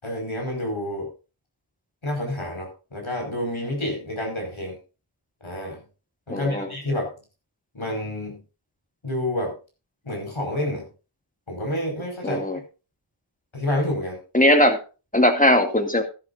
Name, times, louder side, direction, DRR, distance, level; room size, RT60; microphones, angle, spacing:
voice 1, 0.0-1.1 2.0-4.8 5.4-5.8 6.3-7.1 7.7-8.4 9.0-9.5 10.0-10.9 11.5-12.5 13.5-14.2, left 1 dB, 70° left, 1 dB, 5.2 m, -28 dB
voice 2, 6.3-6.7 12.2-12.6 14.3-14.8 15.1-16.0, left 1 dB, 15° left, 5 dB, 2.3 m, -19 dB
13.0 x 12.5 x 2.6 m, 0.32 s
wide cardioid pair, 40°, 49 cm